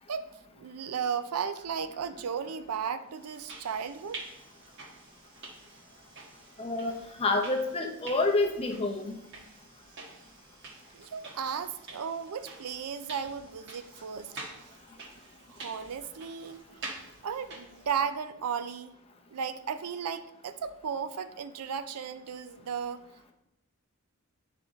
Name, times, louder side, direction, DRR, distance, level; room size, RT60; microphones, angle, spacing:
voice 1, 0.1-4.2 10.9-14.3 15.5-16.6 17.2-18.9 19.3-23.0, right 7 dB, 85° right, 11 dB, 0.5 m, -35 dB
sound 1, 3.2-18.1, right 3 dB, 50° right, 1.5 m, -48 dB
voice 2, 6.6-9.1, left 2 dB, 25° left, 3 dB, 0.7 m, -28 dB
10.5 x 3.6 x 4.0 m, 0.89 s
head